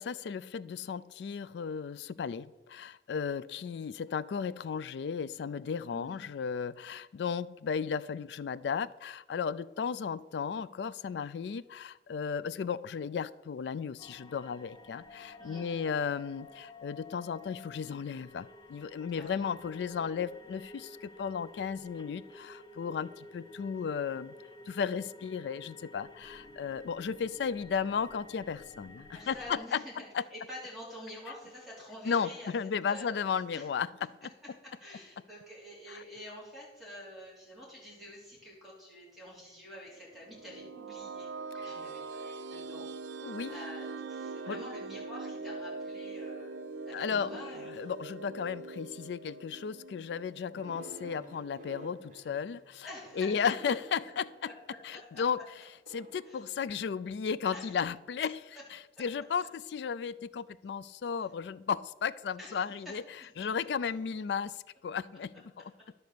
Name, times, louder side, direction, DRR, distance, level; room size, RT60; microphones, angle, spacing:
voice 1, 0.0-24.3 24.7-29.8 30.1-30.2 32.0-34.3 35.9-36.0 41.6-41.8 43.2-43.6 44.5-44.6 46.9-47.4 47.7-52.9 53.2-54.5 54.8-55.4 55.9-58.4 58.7-63.0 63.4-65.6, left 6 dB, 70° left, 0.3 m, -35 dB
voice 2, 3.5-3.9 5.9-6.3 15.4-15.9 19.2-19.5 26.4-26.9 29.1-32.5 32.9-33.2 33.5-33.7 34.6-41.3 41.5-47.9 52.8-53.7 54.5-54.6 54.9-55.2 56.3-56.4 57.5-57.7 59.0-59.1 62.4-62.7 63.4-63.5, left 1 dB, ahead, 3.4 m, -48 dB
sound 1, 14.0-29.5, left 2 dB, 25° left, 0.7 m, -52 dB
sound 2, 40.1-50.9, right 3 dB, 85° right, 0.4 m, -42 dB
sound 3, 50.5-55.1 55.9-57.4, right 1 dB, 45° right, 1.2 m, -51 dB
11.0 x 4.1 x 6.7 m
head